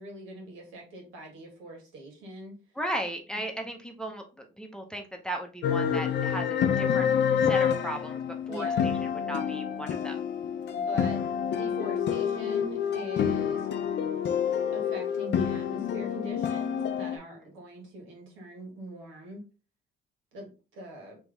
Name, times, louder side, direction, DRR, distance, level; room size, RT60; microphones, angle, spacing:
voice 1, 0.0-2.5 8.5-8.9 10.7-13.7 14.7-19.4 20.3-21.2, right 1 dB, 90° right, 0 dB, 1.7 m, -43 dB
voice 2, 2.8-7.1 7.4-8.2 8.5-10.2 17.2-17.5, right 1 dB, 5° left, 2 dB, 0.8 m, -36 dB
sound 1, 5.6-17.2, left 8 dB, 60° left, 0.5 m, -28 dB
3.5 x 3.0 x 3.3 m, 0.33 s
cardioid pair, 90°, 20 cm